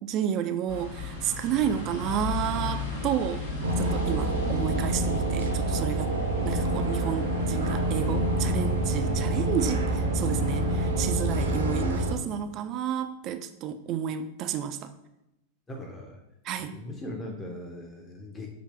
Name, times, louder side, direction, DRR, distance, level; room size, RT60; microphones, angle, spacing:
voice 1, 0.0-3.4 3.8-6.1 6.5-14.9 16.4-16.8, right 9 dB, 35° right, 10 dB, 0.3 m, -31 dB
sound 1, 0.7-10.9, left 2 dB, 65° left, 1.2 m, -37 dB
sound 2, 3.6-12.1, right 1 dB, 75° right, 0.7 m, -27 dB
voice 2, 15.7-16.2 16.6-18.5, left 1 dB, 15° left, 0 dB, 0.7 m, -39 dB
5.8 x 2.7 x 3.2 m, 0.90 s
figure-of-eight pair, 90°, 0 cm